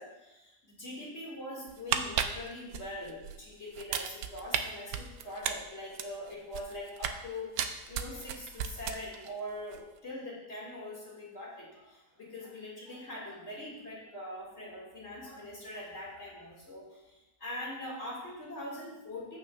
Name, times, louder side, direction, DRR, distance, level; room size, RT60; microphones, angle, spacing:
voice 1, 0.0-19.4, left 1 dB, 40° left, -5 dB, 2.4 m, -43 dB
sound 1, 1.7-3.4 3.7-4.6 4.9-7.2 7.6-9.3 9.6-9.8, right 9 dB, 90° right, 1.2 m, -34 dB
14.5 x 5.8 x 2.4 m, 0.98 s
omnidirectional pair, 1.8 m